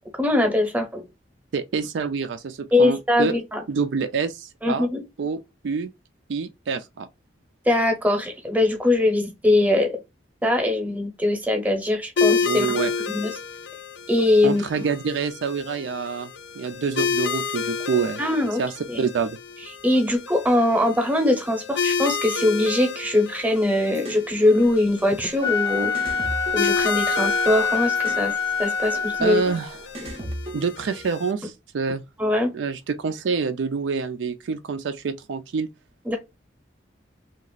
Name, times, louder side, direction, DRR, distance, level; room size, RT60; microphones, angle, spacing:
voice 1, 0.2-1.0 2.7-3.6 4.6-5.0 7.7-10.0 10.4-12.7 13.1-13.3 14.1-14.6 18.2-18.6 18.9-19.0 19.8-25.9 26.5-28.3 28.6-29.4 32.2-32.5 36.1-36.2, left 1 dB, 10° right, 0.8 m, -21 dB
voice 2, 1.5-3.3 3.7-4.9 5.2-5.9 6.3-7.1 12.4-12.9 14.4-18.2 18.6-19.4 28.9-29.9 30.5-32.0 32.5-35.7, right 5 dB, 85° right, 0.4 m, -27 dB
sound 1, 12.2-31.3, left 6 dB, 70° left, 0.4 m, -30 dB
sound 2, 23.9-24.3 25.5-25.6 25.9-27.4 28.0-28.3 29.5-29.6 29.9-31.0, right 1 dB, 30° right, 0.5 m, -35 dB
Wind instrument woodwind instrument, 25.3-29.7, left 5 dB, 15° left, 0.6 m, -25 dB
2.9 x 2.4 x 2.4 m
head